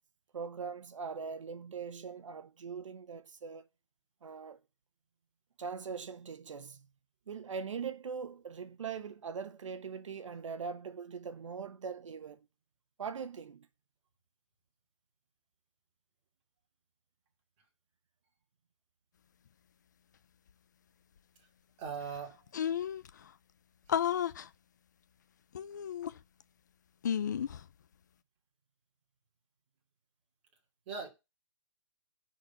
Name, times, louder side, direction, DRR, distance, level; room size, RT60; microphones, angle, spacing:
voice 1, 0.3-3.7 4.2-4.6 5.6-6.9 7.3-12.4 13.0-13.7, right 6 dB, 85° right, 1.2 m, -41 dB
voice 2, 21.8-22.4 23.9-24.0 30.9-31.1, right 6 dB, 20° right, 2.7 m, -40 dB
sound 1, 21.9-22.0 22.2-22.3 22.5-23.1 23.9-24.5 25.6-26.4 27.0-27.6, left 9 dB, 35° left, 0.4 m, -32 dB
10.5 x 4.5 x 7.2 m
hypercardioid pair, 175°, 16 cm